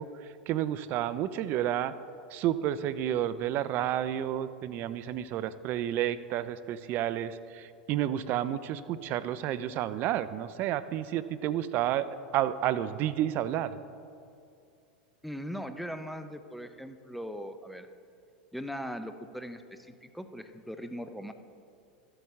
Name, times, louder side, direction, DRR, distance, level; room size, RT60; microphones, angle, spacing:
voice 1, 0.0-1.9 2.3-12.1 12.3-13.8, right 11 dB, 45° right, 14 dB, 0.4 m, -31 dB
voice 2, 15.2-17.9 18.5-21.3, equal, ahead, 9 dB, 0.6 m, -40 dB
12.5 x 8.0 x 3.6 m, 2.5 s
hypercardioid pair, 90°, 5 cm